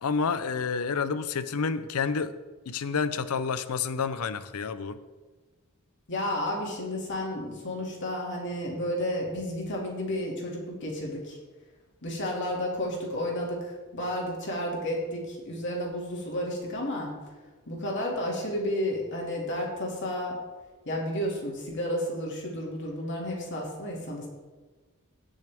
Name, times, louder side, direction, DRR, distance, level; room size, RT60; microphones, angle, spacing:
voice 1, 0.0-2.3 2.7-5.0, left 5 dB, 85° left, 0.6 m, -29 dB
voice 2, 6.1-11.4 12.0-17.1 17.7-20.4 20.9-24.3, left 1 dB, 55° left, 2.4 m, -32 dB
18.0 x 6.3 x 3.5 m
head